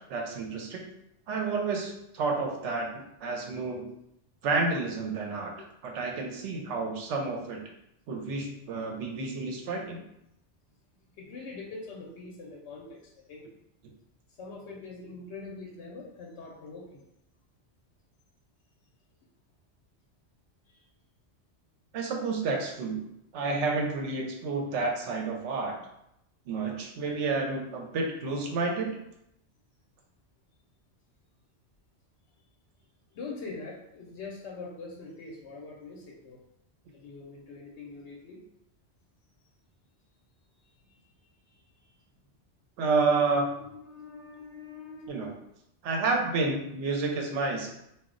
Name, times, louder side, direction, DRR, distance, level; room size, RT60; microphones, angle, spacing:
voice 1, 0.1-0.8 1.3-2.9 3.2-3.9 4.4-5.5 5.8-7.6 8.1-10.0 21.9-23.0 23.3-25.8 26.5-29.0 42.8-43.5 45.1-45.3 45.8-47.7, right 3 dB, 90° right, 1 dB, 0.9 m, -30 dB
voice 2, 11.2-13.0 13.3-13.5 14.4-17.0 20.7-20.8 33.1-36.4 36.9-38.4 40.6-40.7 43.6-45.3, left 3 dB, 75° left, -2 dB, 0.8 m, -43 dB
2.3 x 2.0 x 3.7 m, 0.80 s
omnidirectional pair, 1.2 m